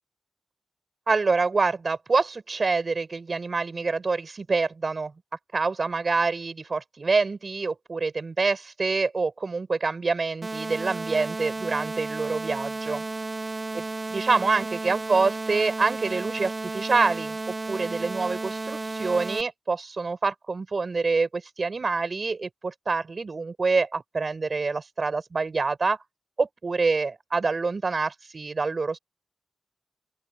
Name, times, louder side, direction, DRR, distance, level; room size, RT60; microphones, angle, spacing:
voice 1, 1.1-5.1 5.5-13.0 13.7-13.8 14.1-17.4 17.7-26.0 26.4-29.0, right 4 dB, 55° right, 6.1 m, -26 dB
sound 1, 10.4-19.4, right 3 dB, 35° right, 1.4 m, -33 dB
open air
wide cardioid pair, 115°, 0 cm